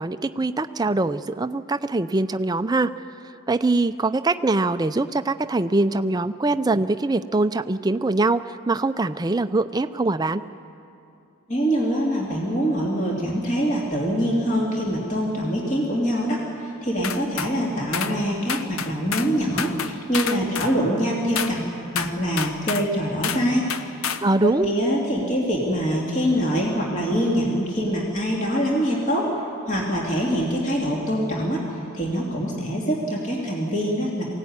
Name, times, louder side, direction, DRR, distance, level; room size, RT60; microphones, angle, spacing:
voice 1, 0.0-2.9 3.5-10.4 24.2-24.7, right 2 dB, 20° right, 11 dB, 0.5 m, -23 dB
voice 2, 11.5-21.6 21.9-24.1 24.4-29.3 29.7-34.2, equal, 35° left, -3 dB, 2.8 m, -24 dB
sound 1, 17.0-17.5 17.9-18.2 18.5-19.3 19.6-20.7 21.3-21.6 21.9-22.9 23.2-23.4 23.7-24.3, left 7 dB, 80° left, 0.8 m, -28 dB
22.5 x 17.0 x 9.7 m, 2.7 s
head